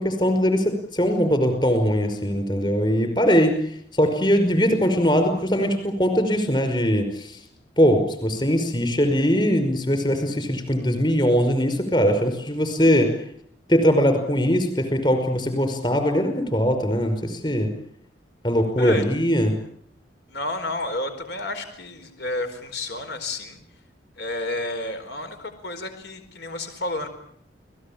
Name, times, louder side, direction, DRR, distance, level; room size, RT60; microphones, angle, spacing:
voice 1, 0.0-3.5 4.0-7.3 7.8-13.1 13.7-17.7 18.4-19.6, equal, 25° left, 7 dB, 5.4 m, -21 dB
voice 2, 20.3-23.6 24.2-27.1, left 2 dB, 65° left, 8 dB, 4.6 m, -31 dB
29.5 x 19.0 x 8.9 m, 0.67 s
head